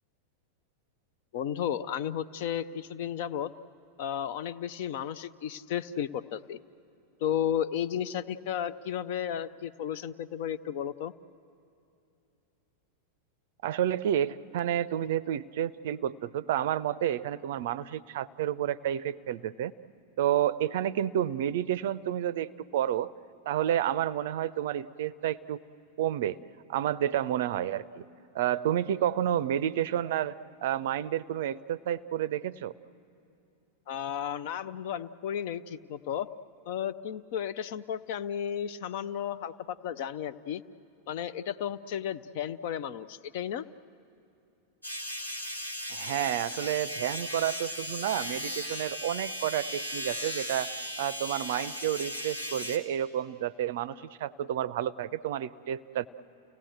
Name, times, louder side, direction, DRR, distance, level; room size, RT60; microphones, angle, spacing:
voice 1, 1.3-3.5 4.0-6.6 7.2-11.1 33.9-36.3 36.7-40.6 41.1-43.7, left 9 dB, 50° left, 15 dB, 0.6 m, -33 dB
voice 2, 13.6-19.7 20.2-23.1 23.5-25.6 26.0-26.4 26.7-28.0 28.3-30.4 30.6-32.7 45.9-56.1, right 11 dB, 55° right, 16 dB, 0.5 m, -30 dB
sound 1, 44.8-52.8, equal, 85° left, 1.8 m, -37 dB
30.0 x 17.5 x 7.9 m, 2.7 s
figure-of-eight pair, 90°, 0 cm